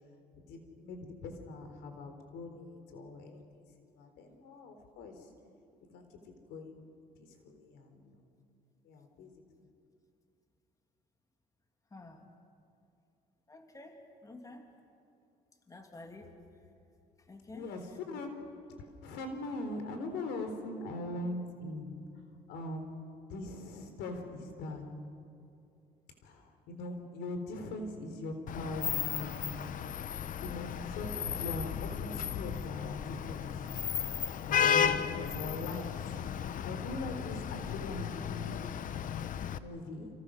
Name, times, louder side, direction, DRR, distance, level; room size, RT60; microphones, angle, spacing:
voice 1, 0.5-3.4 3.8-5.1 5.9-6.1 6.5-6.9 7.2-8.1 8.9-9.3 17.5-17.8 18.1-18.3 18.8-22.1 22.5-23.0 23.3-24.9 26.2-29.4 30.4-33.5 34.4-36.2 36.6-38.7 39.5-40.1, left 2 dB, 85° left, 6 dB, 3.9 m, -41 dB
voice 2, 11.9-12.3 13.5-14.7 15.7-16.4 17.2-18.0, left 2 dB, 20° left, 4 dB, 2.5 m, -50 dB
Vehicle horn car horn honking / Traffic noise roadway noise, 28.5-39.6, left 8 dB, 50° left, 0.9 m, -34 dB
29.5 x 26.5 x 6.5 m, 2.6 s
cardioid pair, 110°, 17 cm